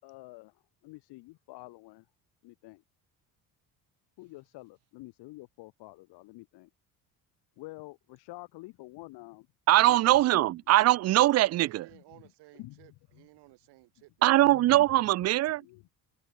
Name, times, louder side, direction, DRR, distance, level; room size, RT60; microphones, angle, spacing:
voice 1, 0.0-2.1 2.4-2.8 4.2-6.7 7.6-9.5 9.8-10.5 11.9-12.2 12.5-13.3 14.4-15.2 15.6-15.8, left 21 dB, 80° left, 1.2 m, -48 dB
voice 2, 9.7-11.8 14.2-15.6, right 15 dB, 40° right, 0.4 m, -22 dB
voice 3, 11.1-15.0, right 20 dB, 85° right, 6.4 m, -55 dB
cardioid pair, 150°, 39 cm